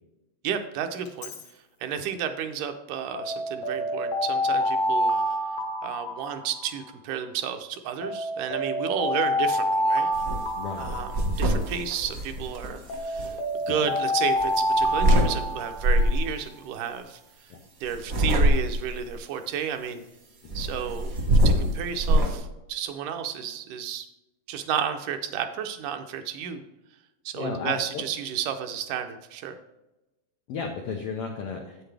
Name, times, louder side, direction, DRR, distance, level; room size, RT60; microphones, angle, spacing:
voice 1, 0.4-1.3 1.8-5.1 5.8-10.1 10.8-11.1 11.4-13.4 13.7-17.2 17.8-20.0 20.5-24.1 24.5-26.6 27.3-29.6, right 8 dB, 80° right, 7 dB, 2.1 m, -32 dB
Alarm, 1.1-1.4 3.1-6.9 8.0-11.8 12.9-16.1, equal, 65° left, 1.9 m, -27 dB
sound 1, 10.1-10.4 10.8-13.3 14.4-15.3 15.8-16.3 17.9-18.9 20.5-22.3, equal, 45° right, 1.1 m, -23 dB
voice 2, 10.6-11.2 13.7-13.9 17.5-17.6 20.4-20.6 27.3-28.0 30.5-31.9, left 5 dB, 80° left, 2 dB, 1.3 m, -34 dB
8.6 x 7.8 x 3.3 m, 0.99 s
omnidirectional pair, 3.7 m